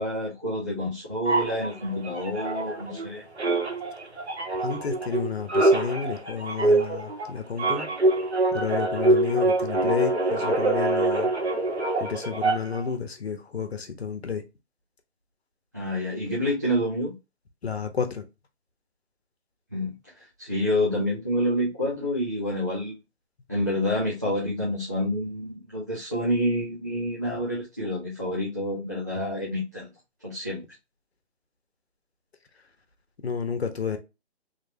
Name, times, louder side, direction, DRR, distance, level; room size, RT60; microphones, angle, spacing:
voice 1, 0.0-3.2 15.7-17.1 19.7-19.9 20.4-23.0 23.5-29.9 30.2-30.6, equal, 15° right, 0.5 m, -28 dB
sound 1, 1.2-3.1 3.4-12.9, right 2 dB, 80° right, 1.4 m, -25 dB
voice 2, 4.6-7.9 8.5-11.3 12.0-14.4 17.6-18.2 33.2-34.0, left 6 dB, 70° left, 1.0 m, -31 dB
3.2 x 3.1 x 2.8 m
hypercardioid pair, 165°, 33 cm